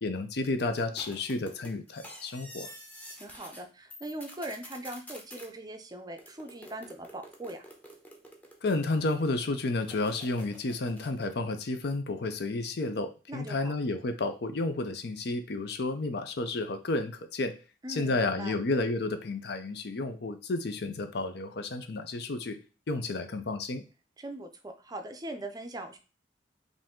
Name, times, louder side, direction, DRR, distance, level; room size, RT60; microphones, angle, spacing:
voice 1, 0.0-2.7 8.6-17.5 17.9-22.6 22.9-23.8, left 2 dB, 65° left, 8 dB, 0.6 m, -31 dB
sound 1, 0.8-3.6 3.9-5.5 6.2-9.1 9.8-11.3, equal, 10° left, 0.8 m, -49 dB
voice 2, 3.1-7.6 13.3-13.7 17.8-18.5 24.2-26.0, right 1 dB, 20° right, 7 dB, 0.5 m, -41 dB
5.1 x 2.6 x 3.6 m, 0.33 s
head